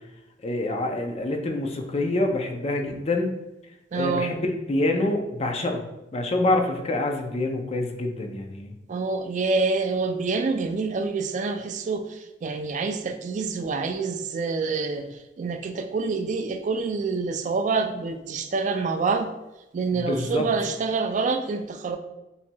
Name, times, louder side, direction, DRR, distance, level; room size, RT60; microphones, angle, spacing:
voice 1, 0.4-3.3 3.9-5.8 6.1-8.7 19.9-20.5, left 2 dB, 35° left, 3 dB, 0.5 m, -26 dB
voice 2, 3.9-4.3 8.9-15.1 15.4-19.3 19.7-22.0, right 4 dB, 45° right, 7 dB, 0.3 m, -27 dB
7.0 x 2.8 x 2.2 m, 0.97 s
head